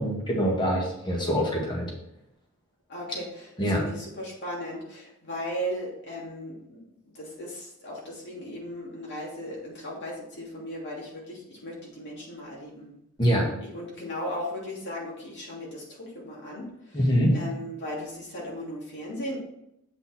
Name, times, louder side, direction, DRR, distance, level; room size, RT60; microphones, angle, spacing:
voice 1, 0.0-1.9 3.6-3.8 13.2-13.5 16.9-17.4, equal, 20° left, -2 dB, 1.9 m, -24 dB
voice 2, 2.9-12.9 13.6-17.0 17.3-19.4, equal, 55° left, -4 dB, 2.9 m, -37 dB
8.2 x 5.4 x 4.4 m, 0.80 s
head